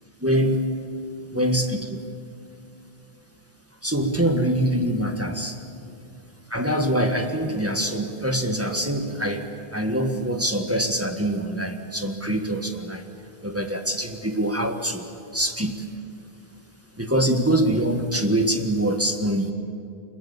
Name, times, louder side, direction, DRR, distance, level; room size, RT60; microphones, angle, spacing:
voice 1, 0.2-0.7 1.3-2.0 3.8-5.6 6.5-9.4 9.7-13.0 13.4-15.7 17.0-19.5, right 1 dB, 15° right, 3 dB, 1.7 m, -24 dB
25.5 x 21.5 x 8.8 m, 2.5 s
omnidirectional pair, 1.1 m